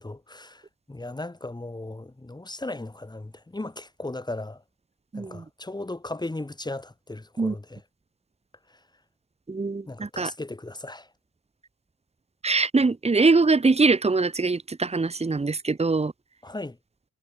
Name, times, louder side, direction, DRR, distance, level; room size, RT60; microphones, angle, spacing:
voice 1, 0.0-4.6 5.1-7.8 8.7-8.8 9.9-11.1 16.4-16.8, left 2 dB, 15° left, 5.4 m, -37 dB
voice 2, 5.1-5.4 7.4-7.5 9.5-10.3 12.4-16.1, right 3 dB, 20° right, 2.4 m, -23 dB
cardioid pair, 90°, 30 cm